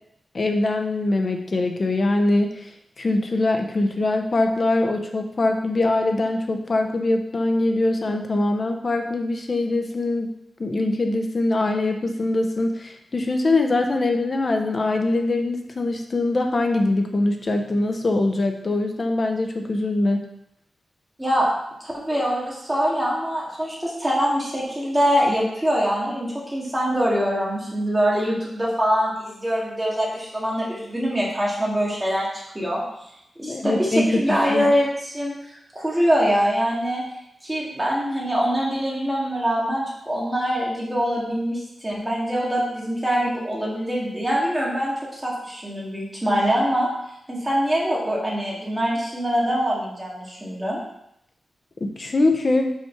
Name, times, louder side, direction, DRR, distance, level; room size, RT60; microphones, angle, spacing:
voice 1, 0.3-10.3 10.6-20.3 33.4-34.7 51.8-52.7, left 2 dB, 35° left, 4 dB, 0.7 m, -23 dB
voice 2, 21.8-32.3 32.5-32.8 33.4-37.0 37.4-46.9 47.3-50.8, equal, 10° right, -5 dB, 1.8 m, -24 dB
5.6 x 5.1 x 4.5 m, 0.78 s
wide cardioid pair, 170°, 0 cm